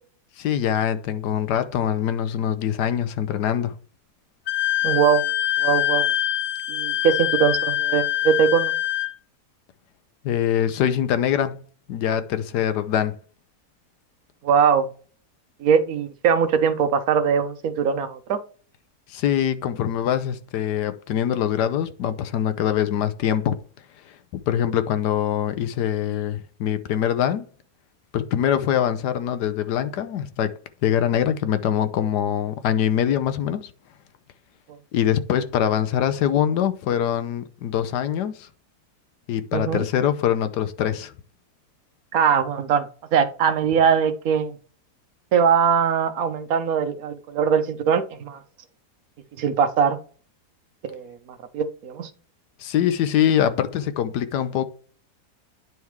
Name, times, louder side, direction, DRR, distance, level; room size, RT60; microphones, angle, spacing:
voice 1, 0.4-3.8 10.2-13.2 19.1-23.6 24.1-27.5 28.1-33.7 34.9-38.5 39.3-41.1 52.6-54.6, left 9 dB, 85° left, 1.3 m, -23 dB
Wind instrument woodwind instrument, 4.5-9.1, left 14 dB, 65° left, 0.8 m, -24 dB
voice 2, 4.8-5.2 5.6-6.1 6.7-8.7 14.4-14.9 15.6-18.4 39.5-39.8 42.1-44.6 45.3-48.4 49.4-50.0 50.8-51.2 51.5-52.1, right 7 dB, 65° right, 1.2 m, -21 dB
9.4 x 3.6 x 4.6 m
omnidirectional pair, 1.7 m